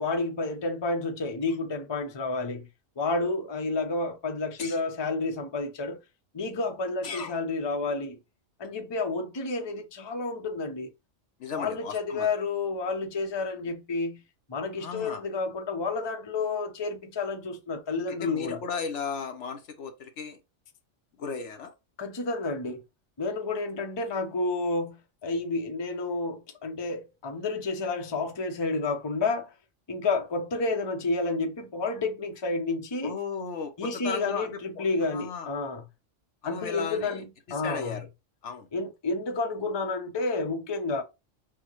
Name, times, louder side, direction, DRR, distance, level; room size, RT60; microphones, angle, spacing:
voice 1, 0.0-2.7 3.0-6.0 6.3-8.2 8.6-10.9 11.5-14.2 14.5-18.6 22.0-22.8 23.2-29.5 29.9-33.2 33.8-35.8 36.4-38.0 38.7-41.0, left 3 dB, 25° left, 0.6 m, -30 dB
voice 2, 11.4-12.3 14.8-15.2 18.1-20.4 21.2-21.7 33.0-35.5 36.4-37.2 37.6-38.1 38.4-38.7, left 5 dB, 75° left, 1.1 m, -35 dB
6.1 x 2.2 x 3.0 m
omnidirectional pair, 1.3 m